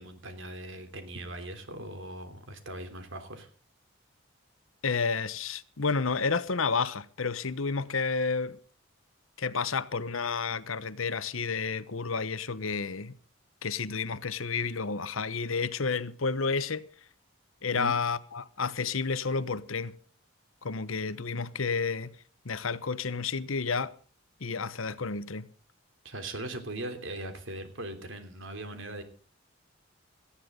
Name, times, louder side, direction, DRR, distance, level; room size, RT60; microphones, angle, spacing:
voice 1, 0.0-3.5 17.8-17.9 26.0-29.0, right 1 dB, 65° right, 3.4 m, -40 dB
voice 2, 4.8-8.6 9.4-13.1 13.6-16.9 17.6-19.9 20.6-22.1 22.4-23.9 24.4-25.5, left 4 dB, 80° left, 1.0 m, -30 dB
18.5 x 14.0 x 3.9 m
head